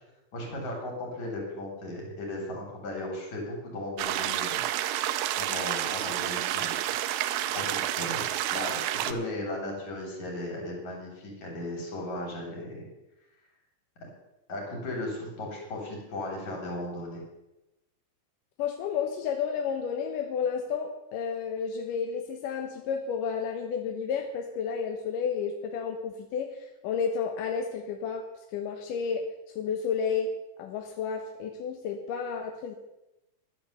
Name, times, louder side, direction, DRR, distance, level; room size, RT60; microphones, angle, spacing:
voice 1, 0.3-4.6 5.4-6.9 7.5-12.9 14.0-14.1 14.5-17.2, left 1 dB, 45° left, 0 dB, 4.8 m, -36 dB
sound 1, 4.0-9.1, right 12 dB, 80° right, 2.7 m, -30 dB
voice 2, 18.6-28.2 28.5-29.2 29.6-30.3 30.6-32.7, left 6 dB, 70° left, 3 dB, 2.2 m, -31 dB
11.5 x 10.5 x 6.8 m, 0.96 s
omnidirectional pair, 4.6 m